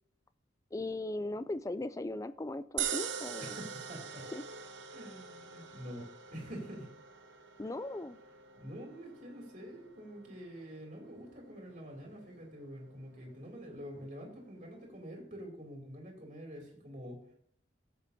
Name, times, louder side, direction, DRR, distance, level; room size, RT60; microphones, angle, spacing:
voice 1, 0.7-3.6 4.3-4.4 7.6-8.2, left 2 dB, 15° left, 14 dB, 0.3 m, -38 dB
sound 1, 2.8-15.1, right 8 dB, 70° right, 0.8 m, -45 dB
voice 2, 3.4-4.3 4.9-6.1 6.3-6.9 8.6-17.2, equal, 40° right, 0 dB, 2.9 m, -46 dB
14.0 x 8.1 x 2.8 m, 0.67 s
head